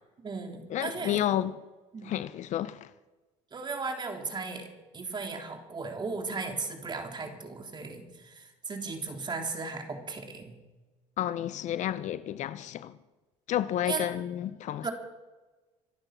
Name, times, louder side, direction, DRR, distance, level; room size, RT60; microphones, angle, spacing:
voice 1, 0.2-1.2 1.9-2.1 3.5-10.6 13.9-14.1 14.8-14.9, right 4 dB, 30° right, 3.7 m, -36 dB
voice 2, 0.7-1.6 2.0-2.9 11.2-13.0 13.5-14.9, left 11 dB, 55° left, 0.7 m, -31 dB
25.5 x 8.9 x 6.1 m
supercardioid pair, 85°, 15 cm